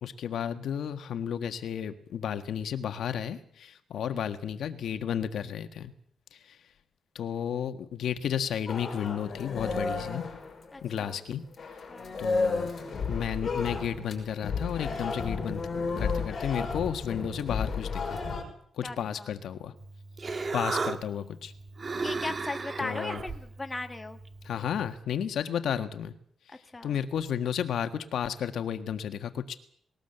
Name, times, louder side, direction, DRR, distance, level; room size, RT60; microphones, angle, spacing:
voice 1, 0.0-5.9 7.1-10.2 10.8-11.4 12.2-12.7 13.1-15.6 16.0-18.2 18.8-19.7 20.5-21.5 22.8-23.2 24.4-26.1 26.8-29.5, left 8 dB, 65° left, 9 dB, 1.6 m, -32 dB
sound 1, 8.7-11.2 11.6-18.4, left 4 dB, 35° left, 5.9 m, -32 dB
voice 2, 10.7-11.2 11.9-12.2 18.8-19.3 22.0-24.2 26.7-27.0, left 2 dB, 15° left, 6 dB, 1.3 m, -38 dB
Human voice, 19.8-25.0, right 4 dB, 30° right, 1.4 m, -36 dB
20.0 x 19.0 x 8.0 m, 0.64 s
wide cardioid pair, 170°, 0 cm